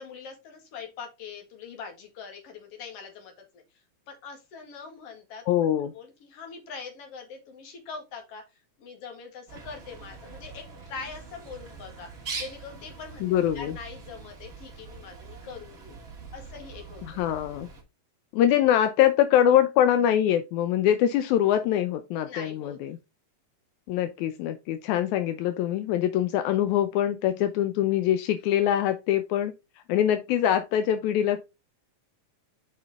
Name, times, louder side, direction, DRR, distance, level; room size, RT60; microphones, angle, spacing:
voice 1, 0.0-3.6 4.1-5.7 5.9-8.4 8.8-12.1 12.4-13.2 13.5-16.0 16.3-17.0 22.3-22.8, left 5 dB, 55° left, 2.7 m, -42 dB
voice 2, 5.5-5.9 13.2-13.8 17.1-17.7 18.3-23.0 23.9-29.5 29.9-31.4, left 11 dB, 85° left, 2.0 m, -23 dB
Bird, 9.5-17.8, right 4 dB, 30° right, 1.5 m, -43 dB
6.5 x 5.2 x 3.5 m
omnidirectional pair, 3.3 m